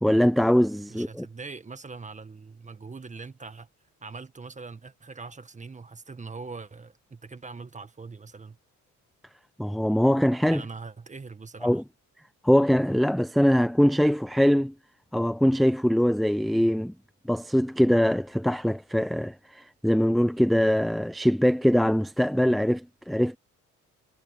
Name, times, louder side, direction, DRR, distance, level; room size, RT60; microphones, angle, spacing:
voice 1, 0.0-1.3 9.6-10.6 11.6-11.8 12.4-14.7 15.1-16.9 17.3-23.4, equal, ahead, 0.7 m, -22 dB
voice 2, 0.9-3.7 4.0-8.6 10.5-11.8, right 4 dB, 25° right, 1.7 m, -42 dB
cardioid pair, 90°, 30 cm